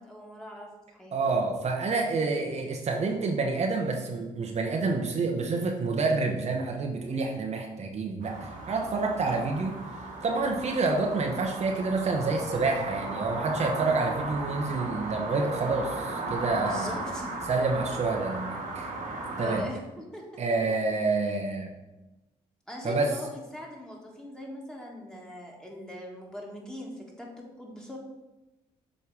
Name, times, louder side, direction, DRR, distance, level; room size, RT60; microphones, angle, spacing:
voice 1, 0.0-1.2 16.6-17.4 19.4-20.2 22.7-28.0, equal, 5° left, -2 dB, 1.8 m, -42 dB
voice 2, 1.1-9.8 10.2-17.0 17.5-18.9 19.4-19.7 20.4-21.7 22.8-23.1, right 3 dB, 50° right, 2 dB, 1.0 m, -28 dB
sound 1, 8.2-19.6, right 2 dB, 75° right, 1.6 m, -36 dB
7.3 x 3.3 x 4.9 m, 1.1 s
cardioid pair, 75°, 14 cm